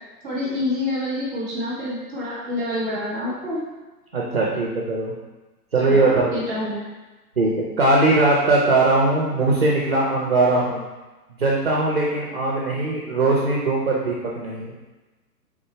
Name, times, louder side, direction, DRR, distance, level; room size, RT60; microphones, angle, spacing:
voice 1, 0.2-3.6 5.8-6.8, left 1 dB, 5° right, -10 dB, 1.0 m, -27 dB
voice 2, 4.1-5.1 5.7-6.3 7.4-10.9 11.4-14.7, right 2 dB, 40° right, -4 dB, 0.5 m, -20 dB
3.7 x 2.8 x 4.3 m, 1.2 s
hypercardioid pair, 175°, 49 cm